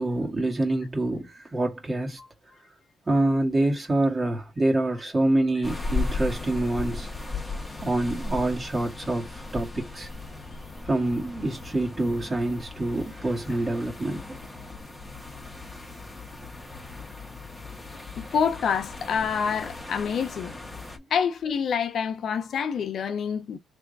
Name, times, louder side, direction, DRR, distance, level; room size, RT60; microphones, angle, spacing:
voice 1, 0.0-2.2 3.1-7.1 7.8-10.1 10.8-14.4, right 2 dB, 25° right, 2.1 m, -26 dB
Quiet shore in summer, 5.6-21.0, left 3 dB, 5° left, 1.7 m, -37 dB
voice 2, 18.2-20.6 21.1-23.6, left 7 dB, 60° left, 0.8 m, -27 dB
3.5 x 3.4 x 4.0 m
cardioid pair, 90°, 0 cm